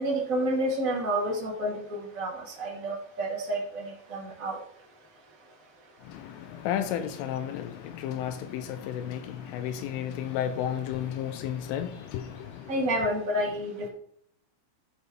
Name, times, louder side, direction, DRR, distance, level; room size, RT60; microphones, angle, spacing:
voice 1, 0.0-4.6 12.7-13.9, right 1 dB, 40° right, 1.1 m, -29 dB
voice 2, 6.0-12.7, left 10 dB, 80° left, 3.2 m, -33 dB
14.5 x 5.2 x 4.7 m
omnidirectional pair, 5.8 m